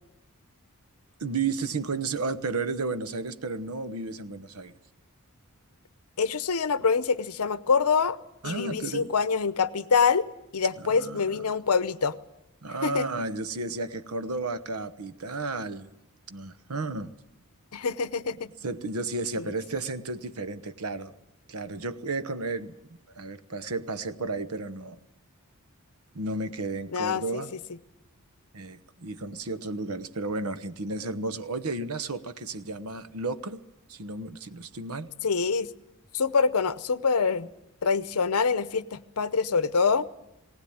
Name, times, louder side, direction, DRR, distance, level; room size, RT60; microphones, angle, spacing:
voice 1, 1.2-4.8 8.4-9.1 10.8-11.4 12.6-15.9 16.3-17.1 18.6-21.1 21.5-25.0 26.1-27.5 28.5-33.6 33.9-35.1, right 3 dB, 75° right, 12 dB, 1.0 m, -33 dB
voice 2, 6.2-8.2 8.4-10.3 10.5-12.2 12.8-13.1 17.7-18.5 19.4-19.5 26.9-27.4 35.2-35.7 36.1-37.5 37.8-40.1, left 5 dB, 75° left, 15 dB, 0.8 m, -25 dB
19.5 x 18.0 x 8.7 m, 0.90 s
head